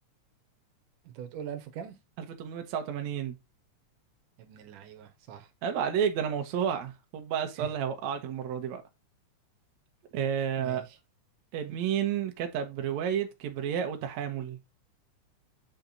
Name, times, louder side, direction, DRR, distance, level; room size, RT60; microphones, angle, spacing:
voice 1, 1.0-2.0 4.4-5.5 7.6-7.7 10.6-11.0, right 9 dB, 90° right, 2.7 m, -42 dB
voice 2, 2.4-3.4 5.6-8.8 10.1-10.8 11.5-14.6, right 8 dB, 70° right, 2.3 m, -31 dB
8.1 x 4.4 x 3.9 m
omnidirectional pair, 3.5 m